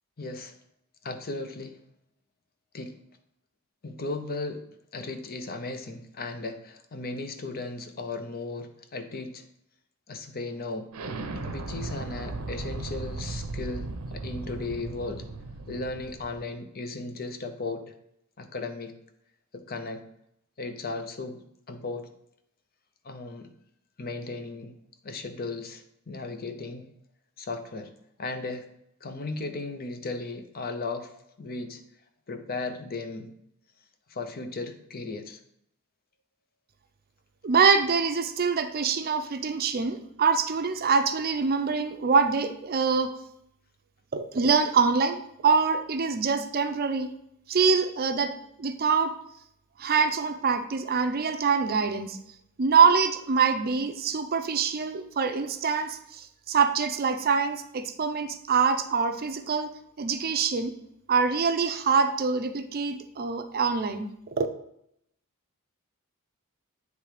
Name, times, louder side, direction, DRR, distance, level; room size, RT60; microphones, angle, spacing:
voice 1, 0.2-0.5 1.0-1.8 2.7-2.9 3.8-4.6 4.9-9.4 10.1-10.9 11.4-15.3 15.7-17.9 18.4-18.9 19.5-20.0 20.6-22.1 23.0-23.5 24.0-24.7 25.0-26.9 27.4-27.9 28.2-28.7 29.0-31.8 32.3-33.3 34.1-35.4, left 3 dB, 45° left, 7 dB, 0.7 m, -36 dB
Explosion, 10.9-16.4, right 3 dB, 80° right, 0.7 m, -36 dB
voice 2, 37.4-43.1 44.1-47.1 47.5-48.3 48.6-49.1 49.8-52.2 52.6-60.7 61.1-64.1 64.4-64.5, right 5 dB, 45° right, 9 dB, 0.5 m, -24 dB
8.4 x 3.4 x 4.8 m, 0.75 s
head